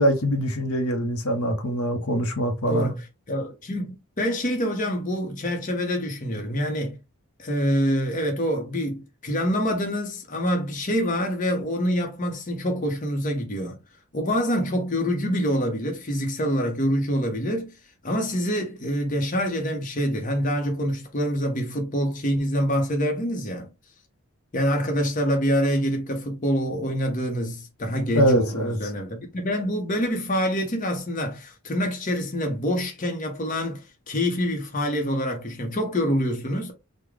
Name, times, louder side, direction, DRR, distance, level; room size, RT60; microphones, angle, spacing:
voice 1, 0.0-2.9 28.1-28.8, equal, 80° left, 0.8 m, -23 dB
voice 2, 2.7-7.0 7.4-13.8 14.1-17.7 18.0-23.7 24.5-36.7, equal, 35° left, 0.8 m, -26 dB
3.6 x 2.2 x 3.2 m
head